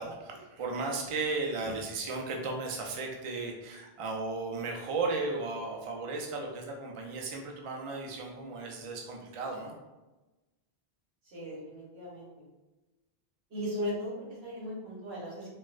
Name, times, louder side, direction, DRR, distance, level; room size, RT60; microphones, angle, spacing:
voice 1, 0.0-9.7, right 3 dB, 45° right, 0 dB, 0.5 m, -35 dB
voice 2, 11.2-12.4 13.5-15.5, equal, 90° right, -5 dB, 1.3 m, -37 dB
4.2 x 2.1 x 2.4 m, 1.1 s
omnidirectional pair, 1.0 m